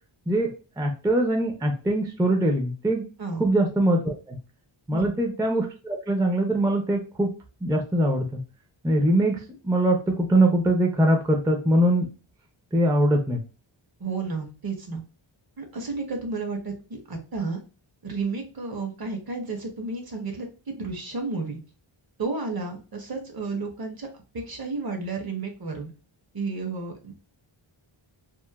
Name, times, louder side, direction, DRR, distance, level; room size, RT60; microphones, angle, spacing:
voice 1, 0.8-3.0 3.4-4.4 4.9-7.3 7.6-8.4 8.8-12.1 12.7-13.4, right 1 dB, 10° right, 2 dB, 0.4 m, -22 dB
voice 2, 14.0-15.0 15.6-17.6 18.0-21.6 22.2-24.1 24.3-25.9 26.3-27.1, right 3 dB, 45° right, 3 dB, 0.7 m, -32 dB
3.0 x 2.0 x 2.2 m, 0.33 s
wide cardioid pair, 110°, 50 cm